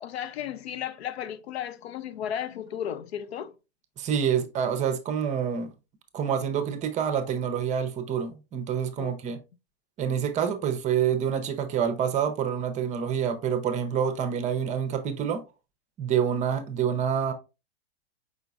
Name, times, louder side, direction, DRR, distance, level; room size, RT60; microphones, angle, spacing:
voice 1, 0.0-3.5 9.0-9.1, left 9 dB, 75° left, 0.6 m, -34 dB
voice 2, 4.0-5.7 6.1-9.4 10.0-15.4 16.0-17.3, right 8 dB, 25° right, 0.6 m, -27 dB
5.0 x 3.8 x 2.3 m
hypercardioid pair, 120°, 32 cm